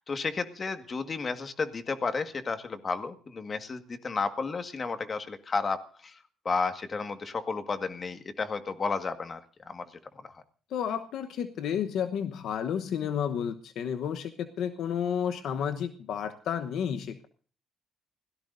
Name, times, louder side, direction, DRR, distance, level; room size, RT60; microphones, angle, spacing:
voice 1, 0.0-6.2 6.5-9.9 10.2-10.4, left 4 dB, 40° left, 8 dB, 1.7 m, -32 dB
voice 2, 10.7-17.3, left 8 dB, 75° left, 9 dB, 1.0 m, -31 dB
29.0 x 17.5 x 2.7 m, 0.42 s
cardioid pair, 90°, 0 cm